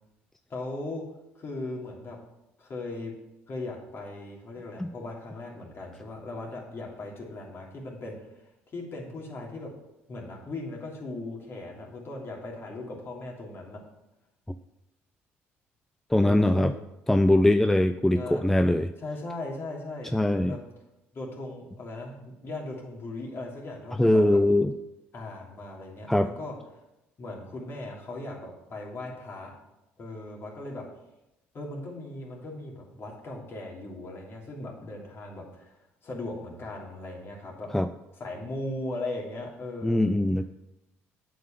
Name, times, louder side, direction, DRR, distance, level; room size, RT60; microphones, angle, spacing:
voice 1, 0.5-1.0 1.3-2.2 2.6-3.1 3.5-8.2 8.7-9.7 10.1-13.8 16.2-16.7 18.1-18.4 19.0-20.6 21.1-22.2 22.4-24.4 25.1-26.6 27.2-29.5 30.0-30.8 31.5-37.7 38.1-40.1, left 2 dB, 45° left, -1 dB, 2.9 m, -38 dB
voice 2, 16.1-16.7 17.1-18.9 20.1-20.5 24.0-24.7 26.1-26.3 37.7-37.9 39.8-40.5, left 1 dB, 5° left, 9 dB, 0.4 m, -22 dB
7.8 x 5.4 x 7.1 m, 0.92 s
supercardioid pair, 70°, 6 cm